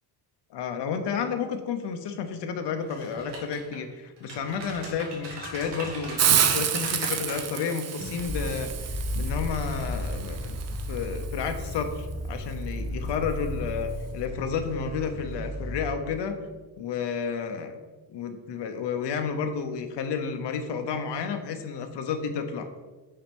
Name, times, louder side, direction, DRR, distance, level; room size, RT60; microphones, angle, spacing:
voice 1, 0.5-10.6 10.9-16.4 16.8-17.8 18.1-22.7, left 6 dB, 70° left, 6 dB, 0.8 m, -31 dB
sound 1, 2.8-3.8 4.2-7.6 8.0-8.2, right 2 dB, 75° right, 1.8 m, -39 dB
Hiss, 6.2-11.8, right 9 dB, 40° right, 0.4 m, -29 dB
sound 2, 8.2-15.9, left 1 dB, 40° left, 1.7 m, -34 dB
5.7 x 4.4 x 5.2 m, 1.3 s
cardioid pair, 175°, 43 cm